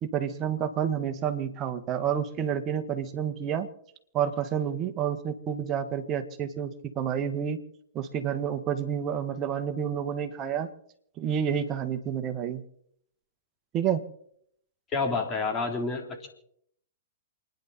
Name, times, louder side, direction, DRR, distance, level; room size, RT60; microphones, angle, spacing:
voice 1, 0.0-3.7 4.1-7.6 7.9-10.7 11.2-12.6 13.7-14.0, right 8 dB, 30° right, 7 dB, 1.7 m, -29 dB
voice 2, 14.9-16.3, left 4 dB, 25° left, 3 dB, 3.5 m, -29 dB
28.5 x 10.5 x 4.3 m, 0.68 s
hypercardioid pair, 110°, 0 cm